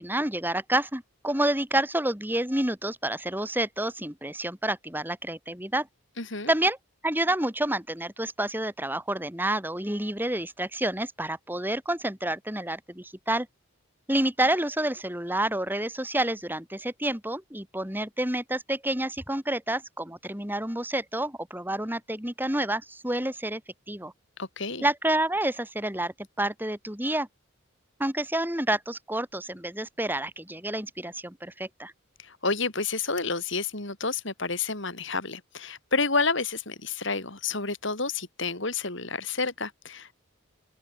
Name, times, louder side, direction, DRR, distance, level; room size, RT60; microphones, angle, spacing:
voice 1, 0.0-5.9 6.5-6.8 7.0-13.5 14.1-23.6 23.9-24.1 24.8-27.3 28.0-31.9, right 1 dB, 10° right, 3.2 m, -29 dB
voice 2, 6.2-6.5 24.4-24.8 32.2-40.1, left 4 dB, 60° left, 4.0 m, -30 dB
open air
head